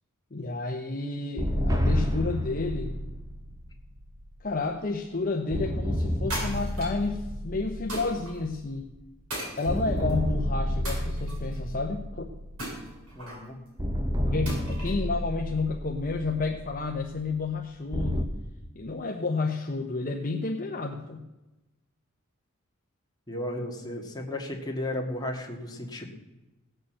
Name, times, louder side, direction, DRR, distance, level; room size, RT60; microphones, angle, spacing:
voice 1, 0.3-3.1 4.4-8.9 9.6-12.3 14.3-18.3 18.7-21.2, left 3 dB, 40° left, 2 dB, 0.9 m, -31 dB
sound 1, 1.4-4.9 5.5-9.3 9.7-13.3 13.8-18.2, equal, 15° right, 1.1 m, -31 dB
sound 2, 6.3-7.1 7.9-8.3 9.3-10.1 10.8-11.6 12.6-13.5 14.5-15.0, right 1 dB, 75° right, 6.6 m, -37 dB
voice 2, 13.1-13.6 23.3-26.1, left 1 dB, 20° left, 1 dB, 1.9 m, -34 dB
17.0 x 6.7 x 7.7 m, 1.0 s
head